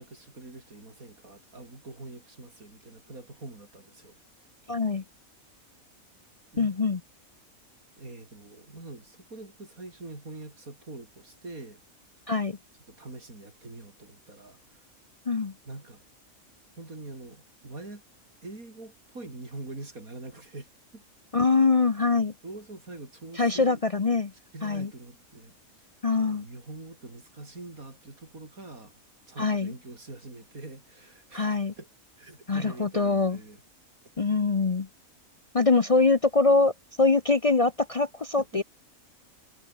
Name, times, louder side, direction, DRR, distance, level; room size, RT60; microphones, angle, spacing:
voice 1, 0.0-4.2 6.5-6.8 8.0-11.8 12.9-14.9 15.6-16.0 16.8-18.0 18.4-21.0 22.4-23.8 24.5-25.8 26.2-29.0 29.3-31.9 32.2-33.6 38.4-38.6, right 2 dB, 90° right, 5.5 m, -44 dB
voice 2, 4.7-5.0 6.6-7.0 12.3-12.6 15.3-15.5 21.3-22.3 23.4-24.3 24.6-24.9 26.0-26.4 29.4-29.7 31.3-31.7 32.5-33.4 34.2-34.9 35.5-36.7 37.0-38.6, left 3 dB, 35° left, 0.6 m, -23 dB
omnidirectional pair, 1.4 m